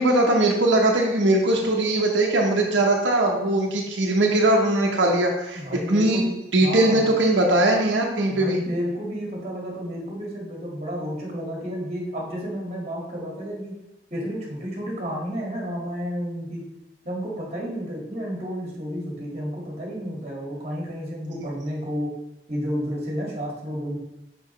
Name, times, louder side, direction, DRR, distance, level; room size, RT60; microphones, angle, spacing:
voice 1, 0.0-5.6 5.9-6.2 6.5-8.6, right 1 dB, 90° right, 0 dB, 0.8 m, -20 dB
voice 2, 5.5-7.1 8.3-13.7 14.1-16.6 17.0-22.1 22.5-24.0, equal, 35° right, -3 dB, 1.6 m, -31 dB
5.8 x 5.3 x 3.0 m, 0.90 s
head